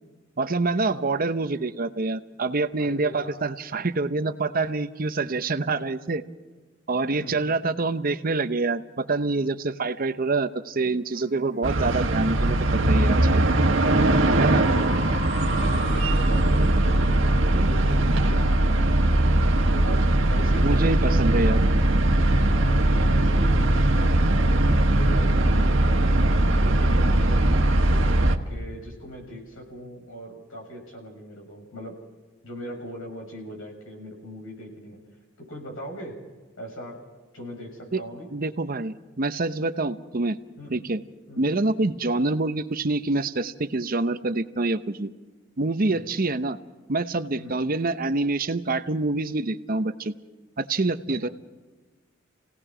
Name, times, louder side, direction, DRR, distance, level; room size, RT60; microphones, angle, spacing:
voice 1, 0.4-6.2 6.9-13.5 14.4-14.6 20.6-21.6 37.9-38.0 38.3-40.4 40.7-41.0 41.4-45.1 45.6-46.6 46.9-50.1 50.6-51.3, right 3 dB, 45° right, 11 dB, 0.8 m, -26 dB
voice 2, 2.8-3.5 7.1-7.4 13.8-14.9 15.4-19.2 19.7-21.6 22.5-26.1 26.6-28.0 28.5-32.0 32.4-35.0 35.4-36.2 36.6-37.0 37.3-38.3 40.6-40.8 41.3-41.4 45.8-46.1 47.3-47.6 51.1-51.3, equal, 80° left, 1 dB, 7.1 m, -39 dB
sound 1, 11.1-20.0, left 1 dB, 45° left, 3.0 m, -40 dB
sound 2, 11.6-28.4, right 1 dB, 70° right, 1.5 m, -20 dB
29.0 x 18.0 x 5.0 m, 1.3 s
head